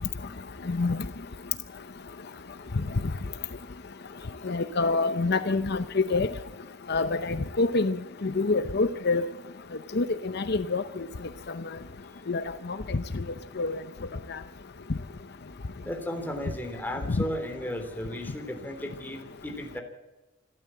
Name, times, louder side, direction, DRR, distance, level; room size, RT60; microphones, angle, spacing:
voice 1, 0.7-1.0 4.4-6.3 6.9-9.3 9.9-10.8 12.3-12.4 12.7-13.2 13.6-13.8 14.3-14.4 17.1-17.2, left 3 dB, 60° left, 11 dB, 0.7 m, -26 dB
voice 2, 15.9-19.8, equal, 10° left, 4 dB, 3.4 m, -35 dB
26.5 x 13.0 x 7.8 m, 1.1 s
head